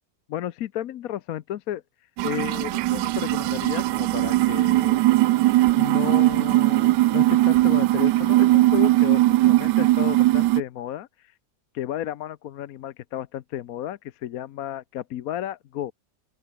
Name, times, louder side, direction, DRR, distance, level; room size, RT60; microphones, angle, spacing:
voice 1, 0.3-1.8 2.2-5.0 5.7-11.3 11.7-15.9, left 12 dB, 60° left, 1.0 m, -33 dB
sound 1, 2.2-10.6, right 17 dB, 75° right, 1.1 m, -19 dB
open air
omnidirectional pair, 2.0 m